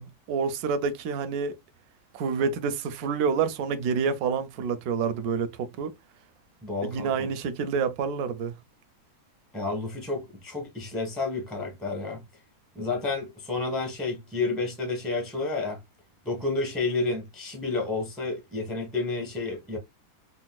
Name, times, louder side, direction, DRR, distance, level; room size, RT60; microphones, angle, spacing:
voice 1, 0.0-1.6 2.1-5.9 6.8-8.6, right 6 dB, 70° right, 0.9 m, -28 dB
voice 2, 6.6-7.3 9.5-12.2 12.7-15.8 16.2-19.8, left 3 dB, ahead, 0.4 m, -30 dB
4.9 x 2.1 x 2.3 m
omnidirectional pair, 2.2 m